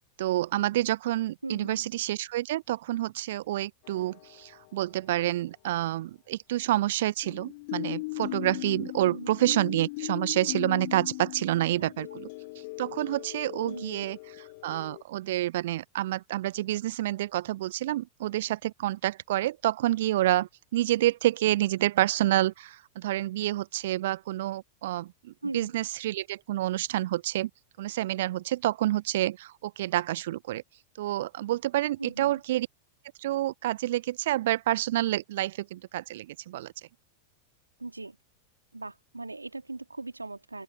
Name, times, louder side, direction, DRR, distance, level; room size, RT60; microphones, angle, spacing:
voice 1, 0.2-12.3 12.8-27.5 27.8-30.6 31.0-32.7 33.2-36.7, right 15 dB, 55° right, 1.0 m, -28 dB
voice 2, 1.4-1.8 9.0-9.4 11.6-11.9 13.6-14.1 25.4-25.7 32.0-32.4 37.8-38.2 38.7-40.6, right 3 dB, 80° right, 3.5 m, -39 dB
sound 1, 3.9-4.7 7.2-15.0, left 25 dB, 50° left, 1.2 m, -38 dB
open air
figure-of-eight pair, 90°, 0 cm